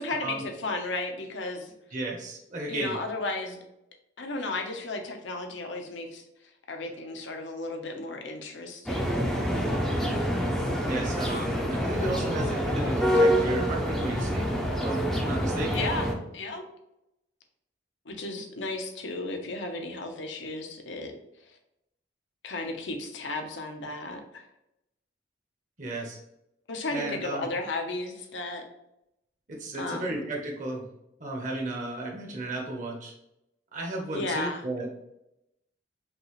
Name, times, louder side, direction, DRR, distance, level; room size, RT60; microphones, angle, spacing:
voice 1, 0.0-1.7 2.7-3.6 4.2-6.2 6.7-9.3 15.7-16.1 16.3-16.6 18.1-21.1 22.4-24.4 26.7-28.6 29.8-30.2 34.1-34.6, left 2 dB, 80° left, 4 dB, 0.7 m, -34 dB
voice 2, 1.9-2.9 10.8-14.5 14.7-15.8 25.8-26.2 26.9-27.5 29.5-30.8 31.2-33.1 33.7-35.0, right 1 dB, 45° right, -1 dB, 1.0 m, -34 dB
sound 1, 8.9-16.1, equal, ahead, 0.5 m, -26 dB
5.2 x 2.4 x 3.1 m, 0.84 s
head